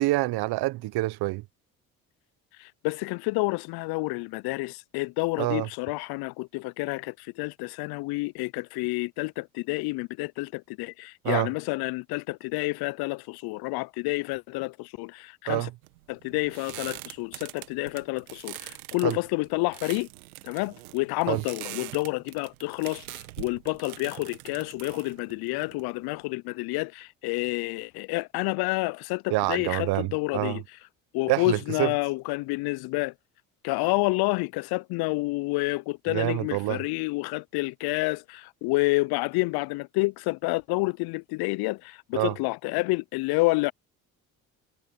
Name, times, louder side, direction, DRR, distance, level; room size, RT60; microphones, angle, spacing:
voice 1, 0.0-1.4 5.4-5.7 11.2-11.5 15.5-15.7 19.0-19.2 21.3-21.4 29.3-30.6 31.3-31.9 36.1-36.8 42.1-42.4, right 19 dB, 65° right, 1.2 m, -27 dB
voice 2, 2.6-15.7 16.1-20.1 20.4-30.6 31.1-33.1 33.6-43.7, left 24 dB, 60° left, 0.5 m, -29 dB
sound 1, 15.8-26.2, right 18 dB, 85° right, 1.7 m, -43 dB
hypercardioid pair, 55°, 42 cm